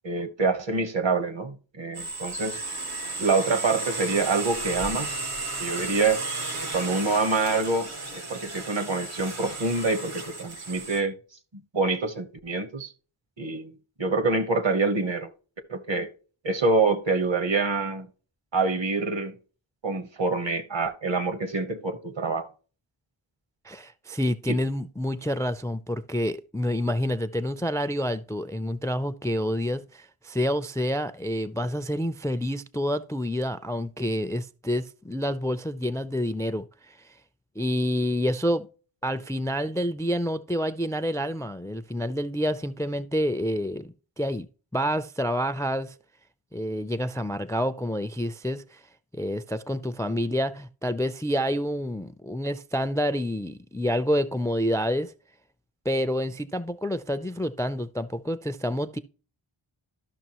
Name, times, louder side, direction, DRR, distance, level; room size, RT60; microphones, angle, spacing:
voice 1, 0.0-2.6 3.2-5.2 5.6-6.2 6.7-11.2 11.5-12.9 13.4-15.3 15.7-16.1 16.4-18.1 18.5-19.4 19.8-22.5 24.5-24.6, right 3 dB, 60° right, 1.2 m, -26 dB
sound 1, 1.9-11.0, right 3 dB, 85° right, 1.8 m, -34 dB
voice 2, 23.6-37.0 37.6-38.7 39.0-44.5 44.7-45.9 46.5-48.8 49.1-55.1 55.9-59.0, equal, 5° left, 0.3 m, -28 dB
12.5 x 6.0 x 2.9 m
wide cardioid pair, 45°, 50 cm